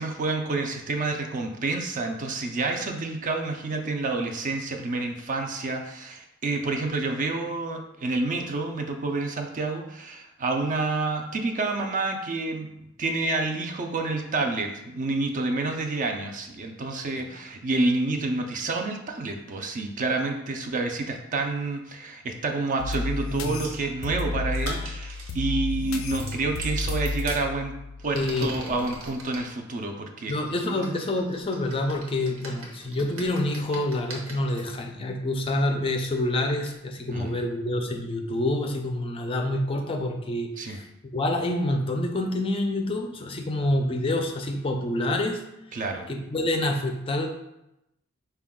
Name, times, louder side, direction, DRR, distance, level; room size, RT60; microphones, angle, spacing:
voice 1, 0.0-12.7 13.0-27.7 28.0-30.3 30.7-31.0 37.1-37.4 40.6-40.8 45.7-46.1, right 3 dB, 40° right, 4 dB, 0.4 m, -29 dB
sound 1, 22.8-28.4, left 2 dB, 90° left, 0.4 m, -32 dB
sound 2, 23.6-23.8 24.5-25.4 26.1-27.4 28.0-29.4 30.3-34.6 35.4-35.5 36.0-36.1 36.6-36.7, right 2 dB, 80° right, 1.0 m, -41 dB
voice 2, 28.1-28.5 30.3-45.4 45.7-45.8 46.1-47.3, left 1 dB, 25° left, 4 dB, 0.4 m, -27 dB
4.7 x 2.3 x 3.6 m, 0.86 s
head